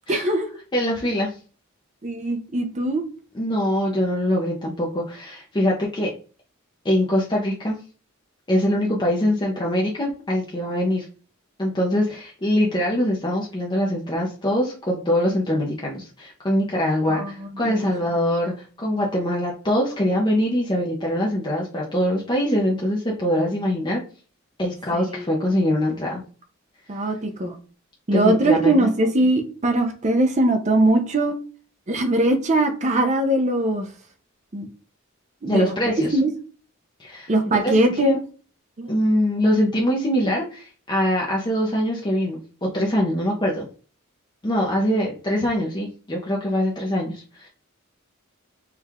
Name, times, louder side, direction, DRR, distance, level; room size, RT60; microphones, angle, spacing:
voice 1, 0.1-0.5 2.0-3.0 17.1-17.9 24.9-25.2 26.9-27.6 28.1-31.3 31.9-33.9 34.5-34.7 35.4-35.7 36.1-36.3 37.3-38.1 38.8-39.0, right 1 dB, 35° right, 5 dB, 0.5 m, -21 dB
voice 2, 0.7-1.4 3.3-6.1 6.8-7.8 8.5-11.0 11.6-24.0 24.6-26.2 28.1-28.9 35.5-36.2 37.0-37.3 37.6-38.2 38.9-43.7 44.4-47.5, equal, 20° left, -3 dB, 0.6 m, -23 dB
4.5 x 2.3 x 3.5 m, 0.39 s
head